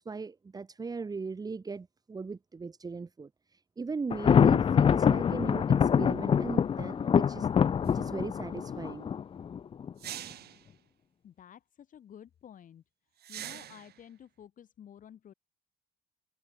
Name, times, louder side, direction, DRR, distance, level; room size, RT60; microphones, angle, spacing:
voice 1, 0.0-7.5 7.8-9.1, right 4 dB, 20° right, 3.0 m, -39 dB
Thunder, 4.1-9.9, left 7 dB, 30° left, 0.6 m, -25 dB
sound 1, 7.9-8.0 10.0-10.7 13.2-14.0, right 12 dB, 60° right, 4.6 m, -43 dB
voice 2, 11.2-12.8 13.3-15.3, left 9 dB, 45° left, 4.7 m, -52 dB
cardioid pair, 150°, 18 cm